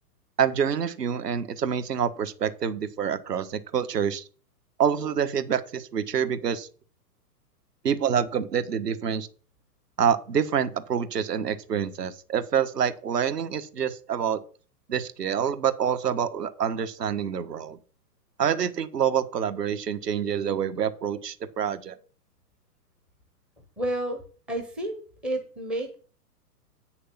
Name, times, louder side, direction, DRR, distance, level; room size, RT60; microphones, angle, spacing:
voice 1, 0.4-4.2 4.8-6.7 7.8-9.3 10.0-14.4 14.9-17.8 18.4-22.0, right 8 dB, 75° right, 11 dB, 1.5 m, -27 dB
voice 2, 23.8-24.2 24.5-25.0 25.2-25.9, right 1 dB, ahead, 4 dB, 0.4 m, -30 dB
9.0 x 6.6 x 5.8 m, 0.39 s
hypercardioid pair, 125°, 48 cm